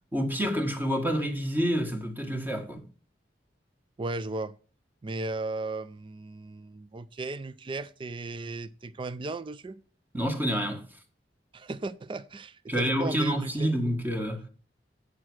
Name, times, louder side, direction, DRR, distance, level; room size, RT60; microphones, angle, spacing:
voice 1, 0.1-2.8 10.1-10.8 12.7-14.5, equal, 10° right, 1.5 m, -28 dB
voice 2, 4.0-4.5 5.0-9.8 11.5-13.7, right 2 dB, 30° right, 0.4 m, -36 dB
8.4 x 6.3 x 6.1 m
head